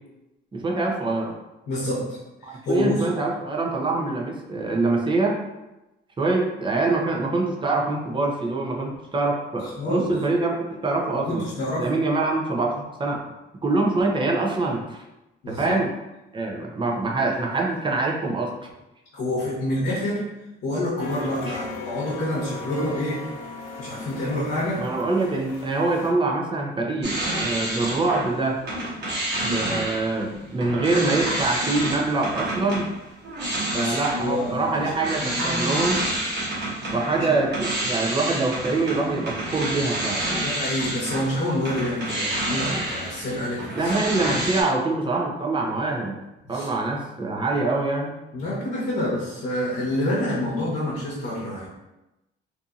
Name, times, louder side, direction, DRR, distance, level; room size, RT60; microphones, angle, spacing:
voice 1, 0.5-1.3 2.4-5.4 6.2-11.4 11.8-12.7 13.0-13.2 13.6-15.0 15.5-15.9 16.3-18.5 21.5-21.6 22.7-22.9 24.8-28.6 29.4-32.9 33.7-36.1 36.9-40.2 43.8-46.2 46.5-48.1, right 3 dB, 25° right, -1 dB, 0.6 m, -24 dB
voice 2, 1.7-2.2 2.5-3.1 9.6-10.1 11.3-11.9 15.4-15.8 19.1-20.2 20.6-23.2 23.8-24.8 33.7-34.9 35.2-35.6 37.0-37.3 40.3-44.2 46.4-46.7 48.3-51.7, left 1 dB, 60° left, -7 dB, 0.9 m, -28 dB
sound 1, 21.0-26.1, left 3 dB, 80° left, 0.5 m, -37 dB
sound 2, 27.0-28.3 28.6-44.6, right 1 dB, 60° right, 1.1 m, -29 dB
2.6 x 2.6 x 2.4 m, 0.98 s
cardioid pair, 90°, 20 cm